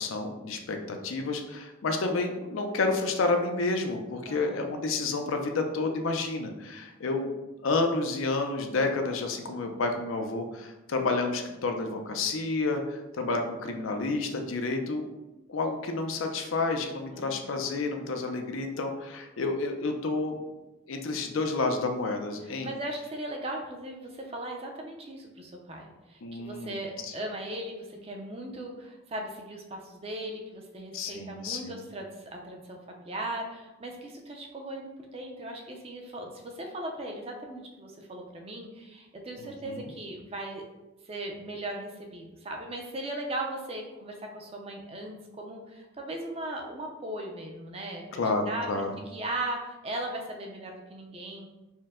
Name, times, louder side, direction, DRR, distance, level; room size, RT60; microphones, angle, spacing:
voice 1, 0.0-7.3 7.6-15.1 15.5-20.6 20.9-22.7 26.2-26.8 27.0-27.1 30.9-31.8 39.4-39.9 48.1-49.0, left 3 dB, 85° left, 4 dB, 0.5 m, -30 dB
voice 2, 4.3-4.7 17.1-17.5 22.4-40.6 41.1-48.2 48.5-51.5, right 1 dB, 30° right, 1 dB, 0.5 m, -38 dB
4.4 x 2.1 x 3.6 m, 1.0 s
head